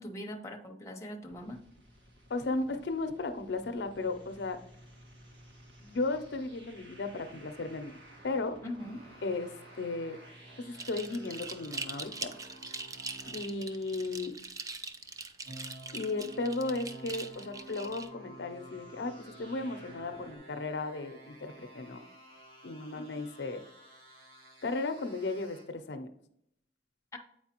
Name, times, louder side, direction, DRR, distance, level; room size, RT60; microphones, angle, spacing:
voice 1, 0.0-1.6 8.6-9.0 27.1-27.2, left 1 dB, 15° left, 2 dB, 0.7 m, -41 dB
sound 1, 1.2-20.4, right 1 dB, 90° right, 1.6 m, -57 dB
voice 2, 2.3-4.6 5.8-8.0 8.2-8.6 9.2-9.5 9.8-10.2 10.7-12.3 13.3-14.4 15.9-22.0 22.6-23.6 24.6-26.1, left 3 dB, 75° left, 8 dB, 0.5 m, -35 dB
sound 2, 8.8-13.5 15.4-25.6, right 1 dB, 60° right, 1.8 m, -52 dB
sound 3, 10.7-18.1, right 4 dB, 20° right, 0.3 m, -42 dB
8.2 x 4.5 x 2.9 m, 0.71 s
head